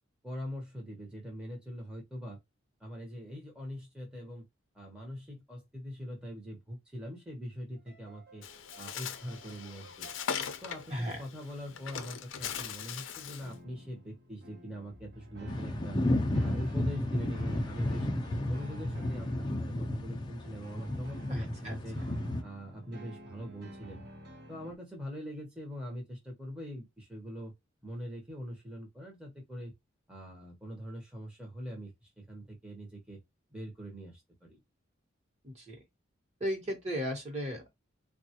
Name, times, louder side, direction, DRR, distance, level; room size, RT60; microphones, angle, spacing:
voice 1, 0.2-2.4 2.8-4.4 4.7-8.4 8.8-10.1 10.6-16.0 16.4-18.1 18.4-22.0 22.4-24.0 24.5-27.5 27.8-29.7 30.1-33.2 33.5-34.6, equal, 5° right, 0.8 m, -42 dB
sound 1, 7.8-10.7 11.6-12.2 13.4-24.8, equal, 55° right, 1.0 m, -51 dB
Bird, 8.4-13.5, left 7 dB, 70° left, 0.5 m, -40 dB
sound 2, 15.5-22.4, left 1 dB, 20° left, 0.5 m, -32 dB
voice 2, 21.3-21.8 35.4-35.8 36.4-37.7, equal, 35° right, 1.1 m, -35 dB
3.6 x 2.3 x 2.8 m
head